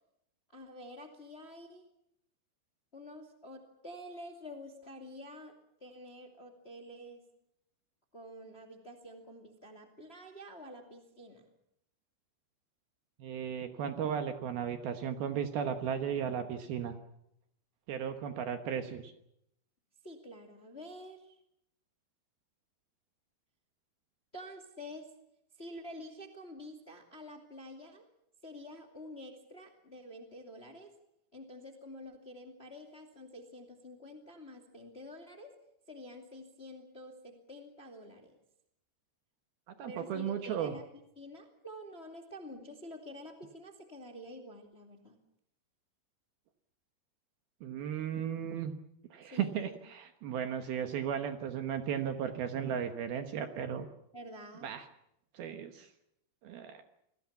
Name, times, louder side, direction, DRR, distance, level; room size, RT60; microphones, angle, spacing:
voice 1, 0.5-1.8 2.9-5.5 5.8-7.2 8.1-11.5 20.0-21.4 24.3-25.1 25.5-28.1 28.4-30.9 31.3-35.5 35.9-38.4 39.9-45.2 49.2-49.8 54.1-54.7, equal, 20° left, 4 dB, 1.6 m, -48 dB
voice 2, 13.2-17.0 17.9-19.1 39.8-40.7 47.6-48.7 49.1-53.9 54.6-54.9 55.3-55.9 56.4-56.8, right 8 dB, 65° right, 7 dB, 2.7 m, -35 dB
27.5 x 20.0 x 7.2 m, 0.77 s
omnidirectional pair, 5.4 m